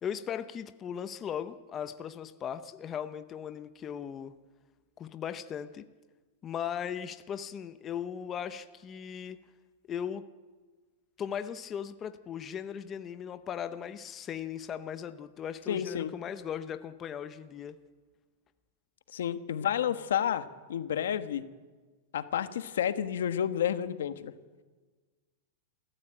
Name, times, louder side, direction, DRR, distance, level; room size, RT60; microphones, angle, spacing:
voice 1, 0.0-4.4 5.0-5.8 6.4-9.4 9.9-10.2 11.2-17.8, left 8 dB, 20° left, 11 dB, 0.7 m, -38 dB
voice 2, 15.7-16.1 19.1-21.4 22.1-24.3, left 9 dB, 90° left, 11 dB, 1.4 m, -30 dB
27.5 x 14.0 x 9.0 m, 1.4 s
supercardioid pair, 170°, 0 cm